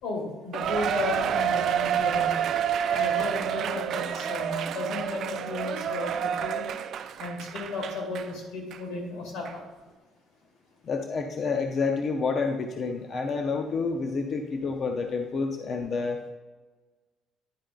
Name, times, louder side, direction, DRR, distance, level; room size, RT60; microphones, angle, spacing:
voice 1, 0.0-2.5 2.9-6.6 7.2-9.6, left 3 dB, 80° left, 0 dB, 2.5 m, -34 dB
Cheering, 0.5-8.3 8.7-8.8 9.4-9.5, right 9 dB, 45° right, 0.3 m, -29 dB
voice 2, 10.8-16.2, left 4 dB, 35° left, 4 dB, 0.5 m, -29 dB
10.5 x 4.7 x 3.8 m, 1.3 s
cardioid pair, 175°, 0 cm